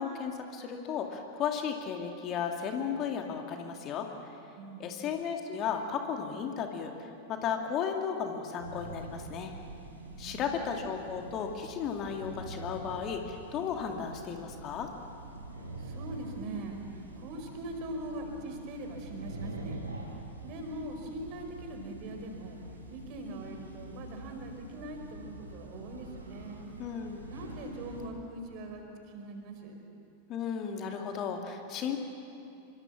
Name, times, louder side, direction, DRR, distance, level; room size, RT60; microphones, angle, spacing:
voice 1, 0.0-4.3 4.8-9.5 10.2-14.9 26.8-27.2 30.3-32.0, left 7 dB, 35° left, 3 dB, 2.4 m, -34 dB
voice 2, 4.5-4.9 9.9-10.8 15.8-19.8 20.4-22.6 22.9-26.7 27.3-29.8, right 1 dB, 40° right, 4 dB, 5.1 m, -42 dB
sound 1, 8.6-28.1, right 2 dB, 80° right, 4.6 m, -45 dB
27.5 x 24.5 x 7.4 m, 2.7 s
figure-of-eight pair, 90°, 0 cm